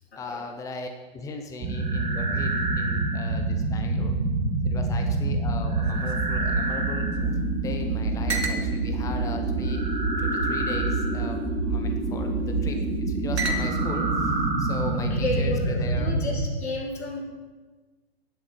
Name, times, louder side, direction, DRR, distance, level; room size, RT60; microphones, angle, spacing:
voice 1, 0.2-4.2 4.6-7.1 7.5-9.9 10.2-16.1, left 3 dB, 10° left, 5 dB, 0.9 m, -38 dB
sound 1, 1.6-16.5, right 2 dB, 20° right, 2.2 m, -26 dB
sound 2, 5.8-7.4 7.7-7.8 8.3-8.7 9.4-10.3 11.1-11.5 12.4-12.8 13.4-14.0, right 2 dB, 80° right, 1.9 m, -34 dB
voice 2, 15.1-17.2, left 3 dB, 80° left, 0 dB, 4.0 m, -31 dB
9.9 x 8.0 x 9.0 m, 1.3 s
hypercardioid pair, 130°, 32 cm